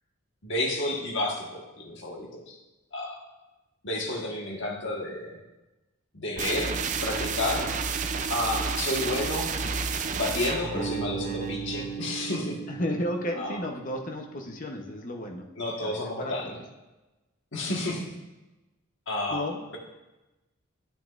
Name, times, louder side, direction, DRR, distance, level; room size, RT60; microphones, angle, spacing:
voice 1, 0.4-2.6 2.9-3.2 3.8-5.4 6.1-7.7 8.3-9.5 10.2-12.5 13.3-13.6 15.6-16.6 17.5-18.1 19.1-19.5, left 1 dB, 55° left, -1 dB, 1.5 m, -31 dB
sound 1, 6.4-12.0, right 5 dB, 35° right, 0.4 m, -31 dB
Bass guitar, 10.7-14.8, right 6 dB, 5° left, 1.2 m, -38 dB
voice 2, 12.7-15.4 15.8-16.6 19.3-19.6, left 1 dB, 40° left, 2 dB, 0.9 m, -33 dB
9.5 x 8.5 x 2.5 m, 1.0 s
head